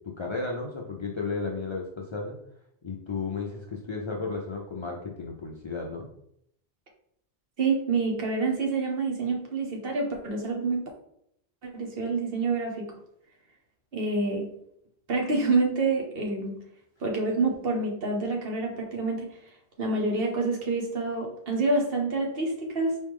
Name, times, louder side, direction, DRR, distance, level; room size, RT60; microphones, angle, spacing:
voice 1, 0.0-2.4 2.8-6.1, left 4 dB, 45° left, -1 dB, 0.4 m, -33 dB
voice 2, 7.6-10.9 11.6-12.9 13.9-14.5 15.1-16.6 17.0-19.3 19.8-23.0, right 3 dB, 55° right, 1 dB, 1.2 m, -27 dB
4.6 x 3.1 x 3.5 m, 0.73 s
omnidirectional pair, 1.2 m